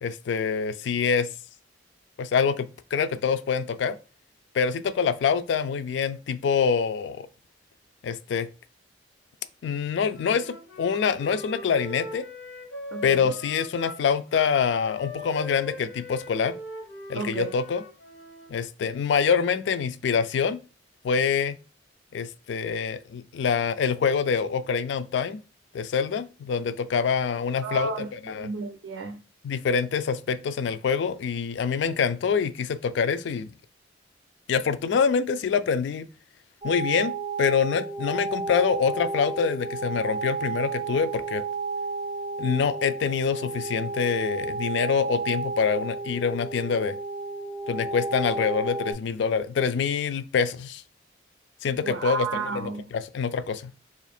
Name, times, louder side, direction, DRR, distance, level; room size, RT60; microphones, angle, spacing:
voice 1, 0.0-1.3 2.2-4.0 4.5-7.3 8.0-8.5 9.6-12.3 13.0-16.6 17.1-17.8 18.5-20.6 21.0-21.6 22.1-25.4 25.7-27.9 28.3-28.5 29.4-33.5 34.5-36.1 36.6-37.1 37.4-41.4 42.4-47.0 47.7-50.8 51.6-53.7, left 6 dB, 70° left, 0.3 m, -25 dB
Wind instrument woodwind instrument, 10.1-18.6, left 2 dB, 90° left, 0.9 m, -40 dB
voice 2, 12.9-13.3 17.2-17.5 27.6-29.2 51.8-52.8, right 3 dB, 85° right, 0.4 m, -32 dB
sound 1, 36.6-48.9, right 3 dB, 30° right, 0.6 m, -32 dB
2.7 x 2.5 x 4.2 m
head